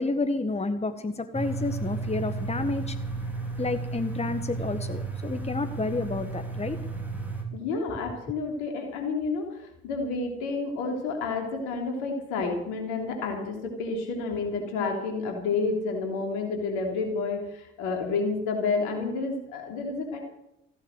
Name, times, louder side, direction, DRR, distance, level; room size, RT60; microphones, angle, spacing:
voice 1, 0.0-3.0 3.6-6.8, left 3 dB, 20° left, 9 dB, 1.5 m, -30 dB
sound 1, 1.3-7.4, right 3 dB, 5° right, 4.3 m, -33 dB
voice 2, 7.5-20.2, left 4 dB, 75° left, 2 dB, 3.1 m, -30 dB
15.0 x 10.5 x 8.0 m, 0.84 s
figure-of-eight pair, 40°, 31 cm